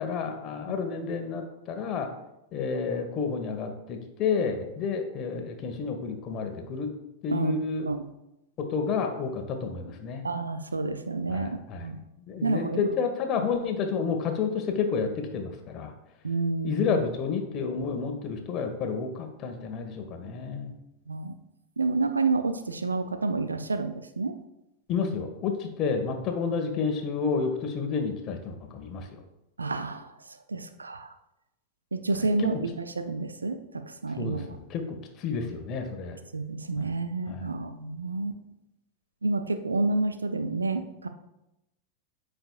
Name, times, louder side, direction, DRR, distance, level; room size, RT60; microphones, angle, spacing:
voice 1, 0.0-2.1 2.5-6.9 7.2-7.9 8.6-10.2 11.3-11.9 12.3-15.9 16.6-20.7 24.9-29.2 32.4-32.6 34.2-34.4 34.7-36.2 36.8-36.9 37.3-37.5, left 5 dB, 35° left, 5 dB, 1.4 m, -30 dB
voice 2, 10.2-12.0 12.4-12.9 13.4-13.5 16.2-16.9 21.1-21.3 21.8-24.4 29.6-30.1 30.5-31.1 31.9-34.6 36.3-38.4 39.2-41.1, right 3 dB, 75° right, 9 dB, 0.6 m, -29 dB
13.5 x 5.1 x 2.4 m, 0.90 s
figure-of-eight pair, 90°, 0 cm